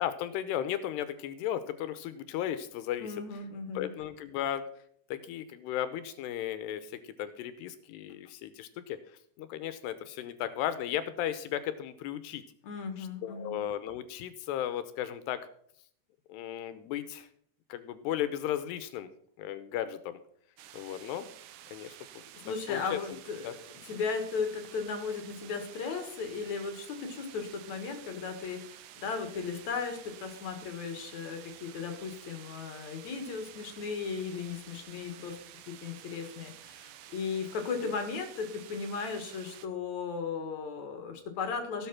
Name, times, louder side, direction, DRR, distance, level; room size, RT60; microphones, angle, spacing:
voice 1, 0.0-3.2 3.8-4.7 5.1-9.0 9.4-12.4 13.0-15.4 16.3-17.3 17.7-19.1 19.4-20.2 20.7-21.3 21.7-21.9 22.5-23.0 23.4-23.5 37.8-37.9, left 11 dB, 80° left, 13 dB, 2.8 m, -35 dB
voice 2, 3.0-3.9 12.6-13.6 22.4-35.4 35.7-41.9, left 5 dB, 55° left, 6 dB, 2.3 m, -36 dB
sound 1, 20.6-39.7, right 11 dB, 90° right, 1.8 m, -51 dB
16.5 x 7.8 x 5.9 m, 0.64 s
omnidirectional pair, 5.0 m